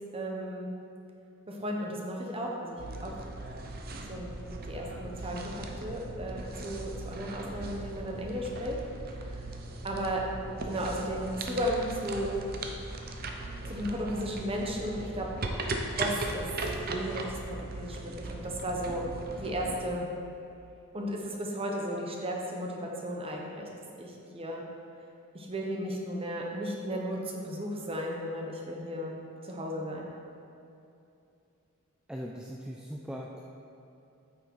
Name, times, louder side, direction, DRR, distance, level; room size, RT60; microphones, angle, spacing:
voice 1, 0.1-0.7 1.5-3.1 4.1-8.8 9.1-9.4 9.8-10.2 10.6-12.4 13.7-15.3 16.0-16.5 16.9-19.0 19.3-20.1 20.9-23.7 24.0-24.6 25.3-29.1 29.4-30.1, equal, 25° right, -1 dB, 1.1 m, -35 dB
sound 1, 2.8-19.9, right 2 dB, 45° right, 0.7 m, -38 dB
voice 2, 32.1-33.5, equal, 5° right, -2 dB, 0.4 m, -40 dB
8.6 x 6.3 x 4.7 m, 2.7 s
head